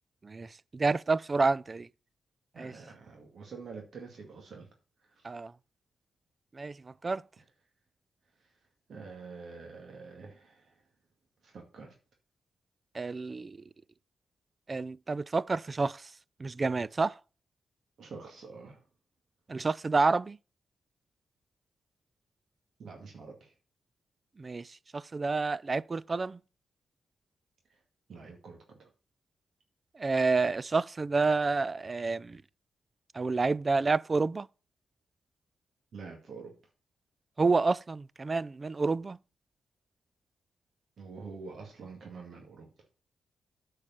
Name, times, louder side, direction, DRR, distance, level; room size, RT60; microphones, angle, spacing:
voice 1, 0.2-1.9 2.6-2.7 5.2-5.5 6.5-7.2 12.9-13.6 14.7-16.1 16.4-17.2 19.5-20.4 24.4-24.7 24.9-26.4 30.0-32.4 33.1-34.5 37.4-39.2, right 3 dB, 35° right, 0.3 m, -29 dB
voice 2, 2.5-4.7 5.0-5.3 8.9-10.8 11.4-11.9 18.0-18.8 22.8-23.5 27.7-27.8 28.1-28.9 35.9-36.6 41.0-42.7, right 4 dB, 65° right, 2.0 m, -46 dB
9.0 x 4.8 x 5.9 m
cardioid pair, 95°, 0 cm